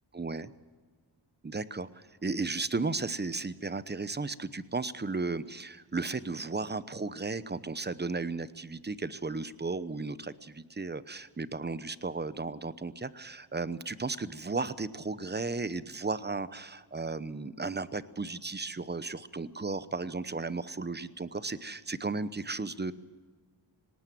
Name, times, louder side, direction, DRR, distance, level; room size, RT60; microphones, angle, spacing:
voice 1, 0.1-0.5 1.4-22.9, right 3 dB, 20° right, 15 dB, 0.9 m, -35 dB
19.0 x 18.5 x 7.7 m, 1.5 s
cardioid pair, 70°, 46 cm